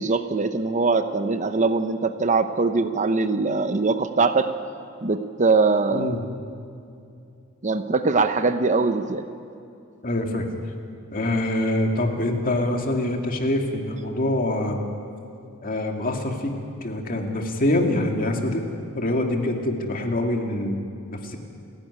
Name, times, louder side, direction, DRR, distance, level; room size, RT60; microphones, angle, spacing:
voice 1, 0.0-4.5 5.0-6.2 7.6-9.3, right 4 dB, 35° right, 9 dB, 0.8 m, -22 dB
voice 2, 10.0-10.5 11.1-14.8 15.6-18.6 19.0-20.8 21.1-21.4, left 1 dB, 40° left, 2 dB, 2.3 m, -25 dB
29.5 x 11.5 x 9.7 m, 2.6 s
head